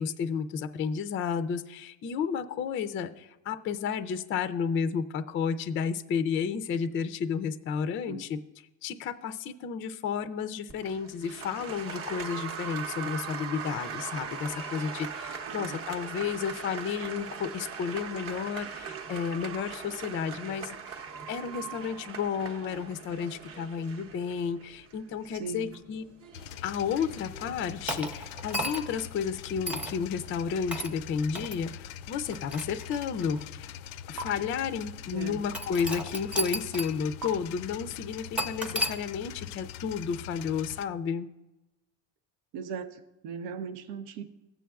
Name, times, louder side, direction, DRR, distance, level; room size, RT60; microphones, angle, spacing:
voice 1, 0.0-8.4 8.8-26.1 26.6-33.7 34.1-41.3, left 6 dB, 30° left, 9 dB, 0.4 m, -32 dB
Applause, 10.7-27.8, right 6 dB, 35° right, 0.8 m, -40 dB
voice 2, 15.5-15.8 25.4-25.7 35.1-35.4 42.5-44.2, right 6 dB, 90° right, 8 dB, 0.8 m, -38 dB
sound 1, 26.3-40.9, left 9 dB, 90° left, 0.5 m, -43 dB
sound 2, 27.9-29.0 29.7-30.0 30.7-30.9 31.3-31.6 32.3-33.4 34.2-34.3 35.5-37.0 37.2-37.3 38.4-39.0, right 1 dB, 5° right, 0.7 m, -33 dB
16.0 x 7.4 x 2.3 m, 0.99 s
cardioid pair, 125°, 40 cm